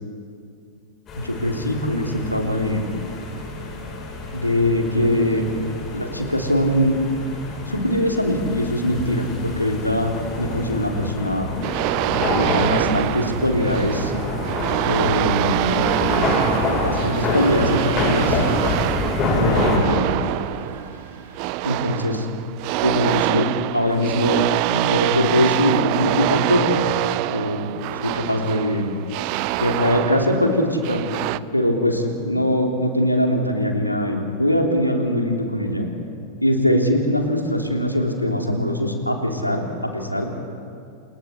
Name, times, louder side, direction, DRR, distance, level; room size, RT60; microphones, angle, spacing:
voice 1, 1.1-2.8 4.3-5.4 5.9-7.0 7.7-11.5 12.2-14.1 14.8-15.9 16.8-18.4 19.3-20.1 21.6-22.3 22.8-23.5 23.7-24.4 24.7-26.9 27.3-27.7 28.0-28.9 29.6-31.1 31.5-35.9 36.4-39.6 39.9-40.3, left 1 dB, 90° left, 2 dB, 3.1 m, -22 dB
sound 1, 1.1-19.8, left 2 dB, 30° left, 7.6 m, -27 dB
sound 2, 11.6-31.4, right 18 dB, 45° right, 0.6 m, -25 dB
Engine, 16.2-22.1, right 3 dB, 65° right, 6.1 m, -41 dB
29.0 x 28.0 x 4.4 m, 2.4 s
figure-of-eight pair, 90°, 0 cm